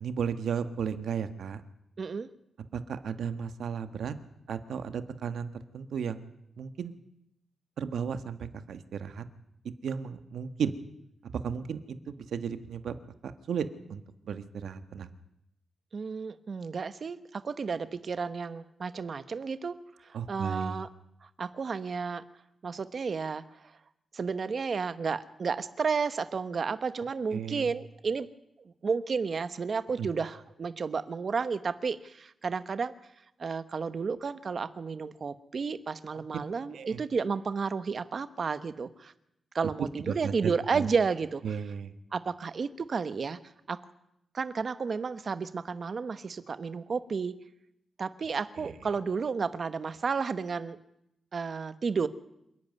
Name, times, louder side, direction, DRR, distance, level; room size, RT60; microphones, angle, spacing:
voice 1, 0.0-1.6 2.7-4.1 4.5-6.2 6.6-6.9 7.8-9.2 9.8-10.7 11.4-12.9 13.2-15.1 20.1-20.8 27.3-27.7 30.0-30.1 36.7-37.0 39.8-40.9 41.4-41.9 48.6-48.7, right 7 dB, 90° right, 10 dB, 1.5 m, -34 dB
voice 2, 2.0-2.3 15.9-19.8 20.0-20.9 21.4-22.2 22.6-23.4 24.1-28.3 28.6-32.9 33.4-39.1 39.5-41.4 42.1-43.4 43.7-43.8 44.3-47.3 48.0-50.8 51.3-52.1, right 5 dB, 45° right, 13 dB, 1.1 m, -32 dB
27.0 x 11.0 x 9.5 m, 0.80 s
wide cardioid pair, 155°, 0 cm